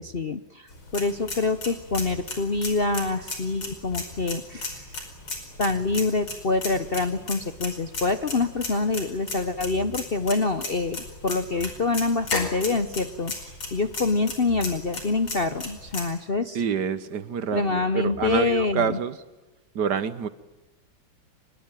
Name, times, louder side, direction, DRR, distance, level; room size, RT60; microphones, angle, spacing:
voice 1, 0.0-4.9 5.6-16.6 17.5-19.0, left 3 dB, 40° left, 0.8 m, -26 dB
sound 1, 0.7-16.0, left 3 dB, 80° left, 5.8 m, -36 dB
voice 2, 16.5-19.2 19.7-20.3, right 7 dB, 60° right, 1.7 m, -27 dB
24.5 x 21.5 x 9.1 m
omnidirectional pair, 2.1 m